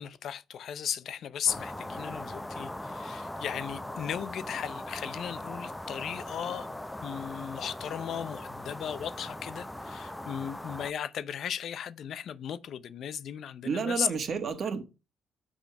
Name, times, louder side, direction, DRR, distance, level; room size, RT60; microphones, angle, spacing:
voice 1, 0.0-6.7 7.0-14.1, left 9 dB, 65° left, 0.5 m, -36 dB
sound 1, 1.5-10.9, left 1 dB, 10° left, 0.6 m, -40 dB
voice 2, 13.6-14.8, right 5 dB, 55° right, 1.5 m, -30 dB
6.3 x 5.0 x 5.7 m
cardioid pair, 90°, 0 cm